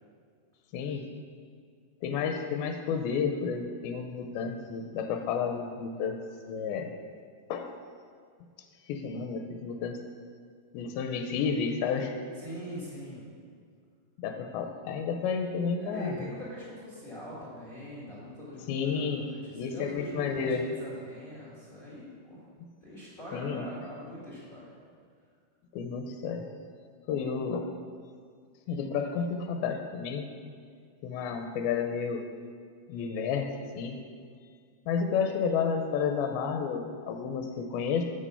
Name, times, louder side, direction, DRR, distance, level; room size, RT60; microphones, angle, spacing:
voice 1, 0.7-1.1 2.0-6.2 6.5-6.9 7.5-7.7 8.9-10.0 10.7-12.1 14.2-16.2 18.7-19.3 19.6-20.6 23.3-23.6 25.7-26.4 27.1-27.7 28.7-30.3 31.0-32.3 32.9-33.5 33.8-34.0 34.9-38.0, left 6 dB, 80° left, 4 dB, 2.3 m, -31 dB
voice 2, 12.4-13.2 15.8-22.4 22.8-24.7, equal, 25° left, -8 dB, 1.2 m, -42 dB
8.4 x 5.2 x 5.5 m, 2.1 s
omnidirectional pair, 4.5 m